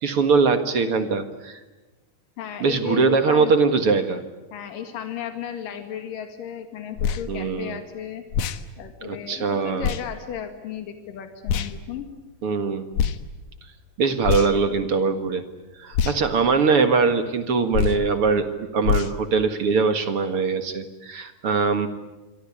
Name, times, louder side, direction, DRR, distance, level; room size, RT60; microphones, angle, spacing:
voice 1, 0.0-1.6 2.6-4.2 7.3-7.8 9.0-9.9 12.4-12.9 14.0-15.4 15.8-21.9, right 4 dB, 50° right, 9 dB, 2.3 m, -22 dB
voice 2, 2.4-3.5 4.5-8.2 8.8-12.1, left 8 dB, 85° left, 6 dB, 3.7 m, -34 dB
sound 1, 7.0-7.2 8.3-8.6 9.8-10.0 11.5-11.7 12.9-13.2 14.2-14.7 15.9-16.2 17.7-18.0 18.8-19.1, left 8 dB, 65° left, 2.3 m, -24 dB
27.5 x 24.0 x 8.6 m, 1.1 s
omnidirectional pair, 3.8 m